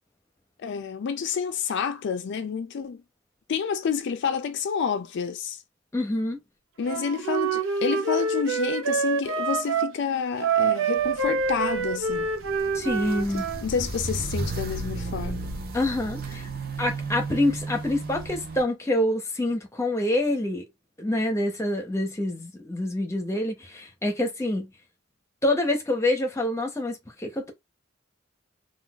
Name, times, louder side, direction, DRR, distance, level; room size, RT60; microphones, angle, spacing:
voice 1, 0.6-3.0 3.5-5.6 6.8-12.3 13.6-15.4, left 6 dB, 60° left, 0.4 m, -29 dB
voice 2, 5.9-6.4 12.7-13.5 15.7-16.5 16.8-20.6 21.0-24.7 25.4-27.5, left 1 dB, 15° left, 0.7 m, -26 dB
Wind instrument woodwind instrument, 6.8-9.9 10.4-13.6, right 5 dB, 90° right, 0.7 m, -26 dB
Walk footsteps, 11.0-18.6, right 2 dB, 50° right, 0.7 m, -34 dB
3.8 x 2.3 x 2.3 m
head